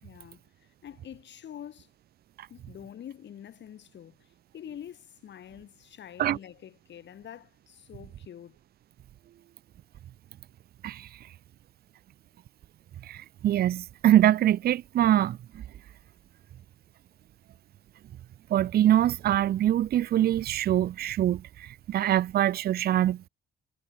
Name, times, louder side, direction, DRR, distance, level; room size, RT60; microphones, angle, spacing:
voice 1, 0.0-1.9 2.5-8.6, left 10 dB, 65° left, 3.1 m, -46 dB
voice 2, 13.1-15.6 18.5-23.3, right 12 dB, 50° right, 0.4 m, -24 dB
cardioid pair, 90°, 20 cm